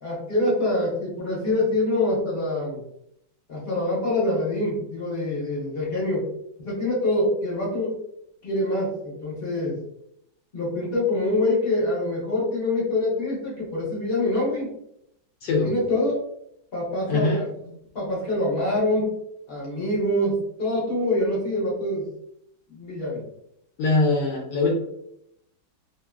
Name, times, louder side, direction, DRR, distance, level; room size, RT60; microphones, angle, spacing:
voice 1, 0.0-2.8 3.5-6.3 6.6-8.0 8.4-9.8 10.5-14.7 15.5-16.2 16.7-17.5 17.9-19.1 19.5-22.0 22.7-23.3, left 1 dB, 45° left, -5 dB, 0.8 m, -25 dB
voice 2, 17.1-17.4 23.8-24.7, left 3 dB, 75° left, -1 dB, 1.0 m, -22 dB
3.0 x 2.6 x 2.2 m, 0.77 s
omnidirectional pair, 2.2 m